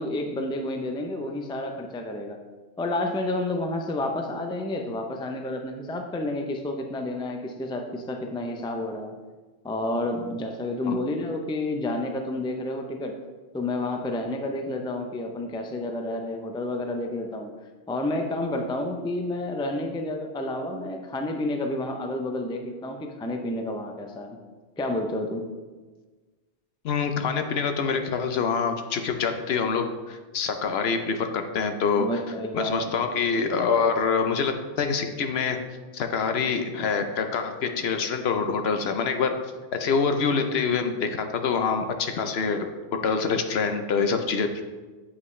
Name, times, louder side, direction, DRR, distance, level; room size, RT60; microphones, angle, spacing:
voice 1, 0.0-2.4 2.8-9.1 9.6-13.2 13.5-17.5 17.9-24.4 24.8-25.4 32.0-32.9, left 1 dB, 10° left, 4 dB, 0.3 m, -30 dB
voice 2, 26.8-32.1 32.5-35.6 35.9-39.4 39.7-42.7 42.9-44.6, left 5 dB, 70° left, 6 dB, 0.9 m, -25 dB
8.2 x 5.4 x 3.2 m, 1.3 s
omnidirectional pair, 1.1 m